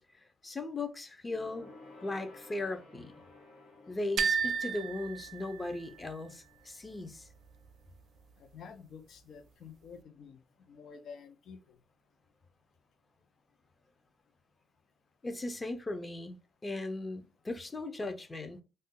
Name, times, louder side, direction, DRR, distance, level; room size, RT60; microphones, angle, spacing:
voice 1, 0.4-1.8 2.0-3.1 3.9-7.3 15.2-16.4 16.6-18.6, left 2 dB, 25° left, 0.6 m, -38 dB
Gong, 1.3-11.0 11.3-11.6 11.9-12.0, left 2 dB, 85° left, 1.1 m, -57 dB
sound 1, 4.2-6.1, right 6 dB, 65° right, 0.3 m, -33 dB
voice 2, 8.3-11.8, left 6 dB, 65° left, 0.5 m, -50 dB
2.6 x 2.2 x 3.7 m
cardioid pair, 90°, 0 cm